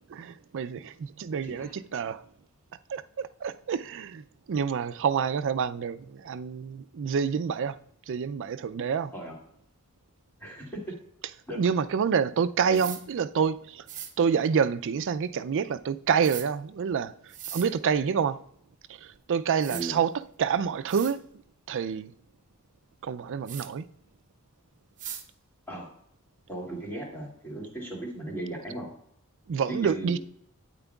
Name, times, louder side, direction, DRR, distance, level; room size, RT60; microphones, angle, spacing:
voice 1, 0.1-2.2 2.9-7.8 8.1-9.1 11.6-13.9 14.2-18.4 18.9-20.1 20.4-21.3 21.7-22.1 23.0-23.8 29.5-30.2, right 6 dB, 55° right, 0.4 m, -28 dB
sound 1, 12.7-13.0 13.9-14.1 16.2-16.5 17.3-17.7 19.1-19.2 19.6-19.8 20.5-20.6 20.9-21.1 23.5-23.7 25.0-25.2, right 9 dB, 35° right, 0.8 m, -39 dB
voice 2, 19.7-20.0 25.7-25.9 26.5-28.9 29.7-30.2, right 1 dB, 10° left, 2.3 m, -36 dB
8.9 x 8.9 x 2.3 m
head